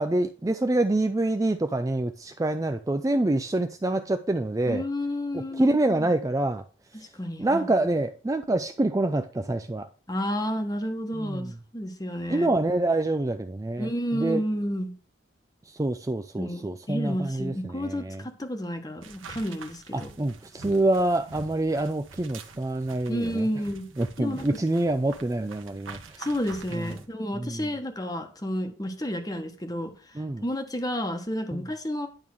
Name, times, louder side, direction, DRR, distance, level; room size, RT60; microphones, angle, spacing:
voice 1, 0.0-4.8 5.3-6.6 7.4-9.9 11.1-11.5 12.3-14.4 15.7-18.2 19.9-23.4 24.0-26.3 26.7-26.8 27.3-27.7 30.2-30.4 31.5-31.6, right 2 dB, 15° right, 0.4 m, -26 dB
voice 2, 4.7-6.1 6.9-7.7 10.1-12.5 13.8-14.9 16.4-20.1 23.1-23.8 24.2-24.5 26.2-32.1, equal, 20° left, 1.2 m, -31 dB
sound 1, 19.0-27.1, right 4 dB, 85° right, 1.3 m, -46 dB
10.5 x 3.6 x 6.2 m
head